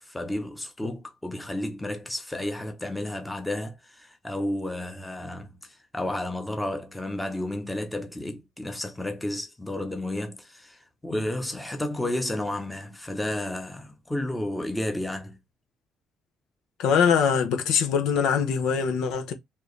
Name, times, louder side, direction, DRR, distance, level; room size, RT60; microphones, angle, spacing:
voice 1, 0.0-15.4, left 1 dB, 5° left, 0.8 m, -32 dB
voice 2, 16.8-19.3, left 7 dB, 90° left, 0.9 m, -23 dB
4.4 x 2.9 x 3.2 m
cardioid pair, 150°, 0 cm